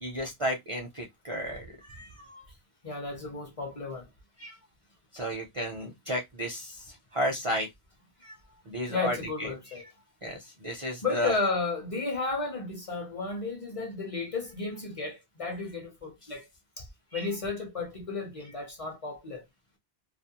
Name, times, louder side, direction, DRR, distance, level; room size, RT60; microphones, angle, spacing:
voice 1, 0.0-2.4 4.4-4.6 5.1-7.7 8.2-8.3 8.7-9.5 10.2-11.3 17.1-17.3, equal, 45° right, 0.4 m, -33 dB
voice 2, 2.8-4.1 8.9-9.9 11.0-16.4 16.8-16.9 17.1-19.4, left 4 dB, 40° left, 0.7 m, -33 dB
2.4 x 2.0 x 2.7 m
omnidirectional pair, 1.1 m